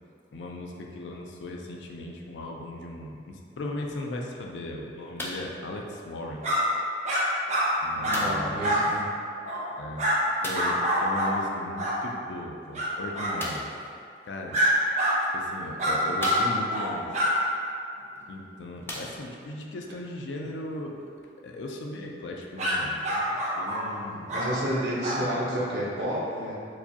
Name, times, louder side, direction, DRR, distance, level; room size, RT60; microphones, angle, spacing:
voice 1, 0.3-6.5 7.8-8.8 9.8-10.0 10.4-13.7 14.3-14.6 15.3-17.1 18.3-21.1 21.4-24.4, left 1 dB, 90° left, 0 dB, 0.4 m, -37 dB
sound 1, 5.2-5.6 6.5-6.6 8.1-8.5 10.4-10.8 13.4-13.8 14.8-14.9 15.5-15.6 16.2-16.9 18.2-18.3 18.8-19.5 20.3-20.4, left 1 dB, 15° left, 0.3 m, -37 dB
sound 2, 6.4-6.6 7.0-7.2 7.5-7.7 8.0-8.2 8.6-8.8 9.4-9.6 10.0-10.2 10.5-11.3 11.8-11.9 12.7-12.9 13.1-13.3 14.5-14.7 15.0-15.1 15.8-16.4 16.7-16.9 17.1-17.3 22.6-22.7 23.0-23.8 24.3-24.5 25.0-25.2, equal, 40° right, 0.8 m, -26 dB
voice 2, 7.9-9.1 23.9-26.5, equal, 70° right, -7 dB, 1.0 m, -31 dB
4.7 x 2.3 x 2.8 m, 2.4 s
head